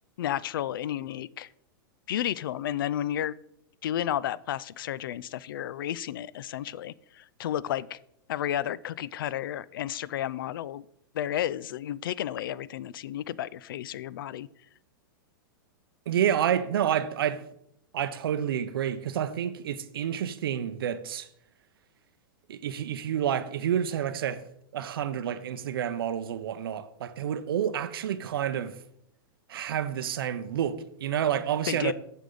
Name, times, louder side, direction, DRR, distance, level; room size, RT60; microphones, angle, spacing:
voice 1, 0.2-1.5 2.1-3.3 3.8-8.0 8.3-10.8 11.1-14.5 31.7-31.9, left 11 dB, 70° left, 0.4 m, -32 dB
voice 2, 16.1-17.4 17.9-21.3 22.5-24.4 24.7-28.8 29.5-31.9, right 9 dB, 80° right, 0.7 m, -29 dB
8.1 x 6.9 x 3.9 m
supercardioid pair, 170°, 12 cm